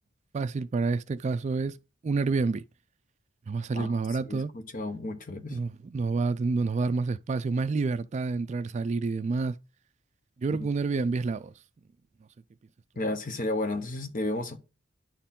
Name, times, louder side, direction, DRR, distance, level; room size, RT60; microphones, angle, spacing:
voice 1, 0.3-1.8 2.0-2.6 3.5-4.5 5.5-9.6 10.4-11.5, right 4 dB, 35° right, 0.3 m, -28 dB
voice 2, 3.7-5.6 13.0-14.6, left 2 dB, 45° left, 1.0 m, -33 dB
10.5 x 4.5 x 3.7 m
head